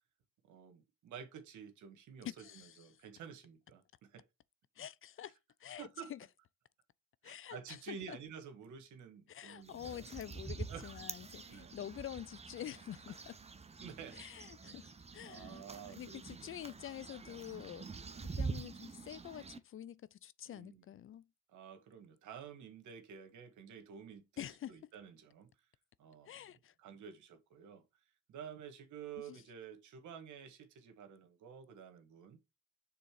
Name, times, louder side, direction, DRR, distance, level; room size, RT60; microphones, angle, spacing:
voice 1, 0.5-4.2 5.8-6.1 7.2-10.0 10.7-10.9 11.5-11.7 13.8-14.2 15.2-16.5 17.2-17.4 18.1-18.3 20.5-20.9 21.5-25.5 26.0-26.5 26.8-27.8 28.3-32.4, right 7 dB, 75° right, 1.6 m, -51 dB
voice 2, 2.2-3.0 4.8-6.3 7.2-8.2 9.3-13.4 14.1-15.6 15.9-17.9 18.2-21.3 24.4-24.8 26.3-26.7 29.3-29.4, left 11 dB, 45° left, 0.4 m, -47 dB
sound 1, 9.6-19.6, right 4 dB, 20° right, 0.8 m, -46 dB
6.9 x 3.7 x 4.7 m
cardioid pair, 90°, 30 cm